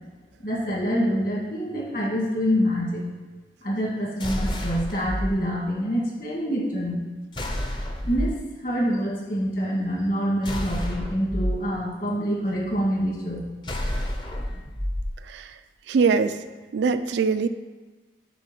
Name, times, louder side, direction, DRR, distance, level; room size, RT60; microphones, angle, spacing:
voice 1, 0.4-3.0 3.6-7.0 8.1-13.5, equal, 50° left, -3 dB, 1.8 m, -26 dB
sound 1, 4.2-5.3 7.3-8.4 10.4-11.5 13.6-15.1, equal, 25° left, 0.6 m, -29 dB
voice 2, 15.9-16.3 16.7-17.5, right 5 dB, 85° right, 10 dB, 0.4 m, -22 dB
6.9 x 3.5 x 6.0 m, 1.3 s
head